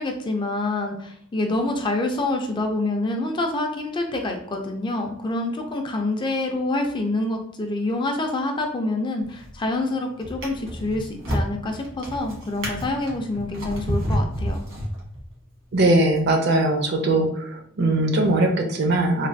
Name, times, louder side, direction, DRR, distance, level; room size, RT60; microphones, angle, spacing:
voice 1, 0.0-14.6, left 2 dB, 25° left, 3 dB, 0.4 m, -26 dB
Drawer open or close, 9.2-9.7 10.2-15.4 16.1-16.3, equal, 80° right, 1.4 m, -29 dB
voice 2, 15.7-19.3, right 2 dB, 55° right, 4 dB, 0.5 m, -20 dB
3.2 x 2.2 x 2.6 m, 0.70 s
head